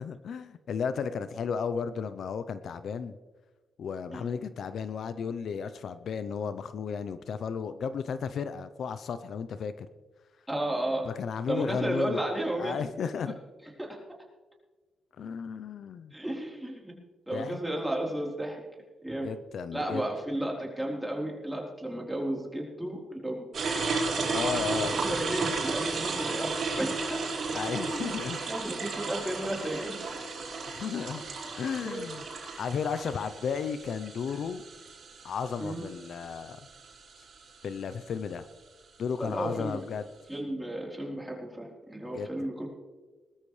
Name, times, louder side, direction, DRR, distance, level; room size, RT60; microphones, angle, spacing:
voice 1, 0.0-3.2 3.8-9.9 11.0-12.2 12.6-13.4 15.2-16.1 17.3-17.6 19.2-20.1 24.3-25.0 27.5-28.4 30.7-31.2 31.6-32.2 32.6-34.6 35.2-36.6 37.6-38.4 39.0-40.0 42.1-42.3, left 6 dB, 70° left, 12 dB, 0.6 m, -34 dB
voice 2, 10.5-11.1 11.5-12.8 13.8-14.2 16.1-16.9 17.3-18.6 19.0-19.3 19.7-23.5 24.9-27.2 27.8-28.1 28.5-30.1 31.8-32.0 35.6-35.9 39.2-39.8 40.3-42.7, right 1 dB, 5° right, -1 dB, 3.8 m, -33 dB
sound 1, 23.5-37.9, right 4 dB, 60° right, 4.7 m, -34 dB
20.0 x 13.0 x 3.3 m, 1.3 s
cardioid pair, 85°, 0 cm